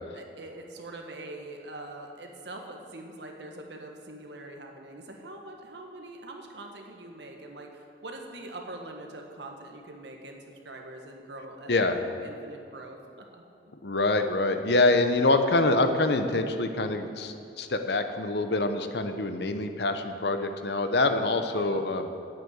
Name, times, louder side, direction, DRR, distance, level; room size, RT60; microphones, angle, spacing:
voice 1, 0.1-13.4 21.5-21.8, right 2 dB, 75° right, 2 dB, 1.6 m, -43 dB
voice 2, 13.8-22.1, left 2 dB, 65° left, 7 dB, 0.9 m, -25 dB
9.8 x 8.4 x 8.1 m, 2.6 s
head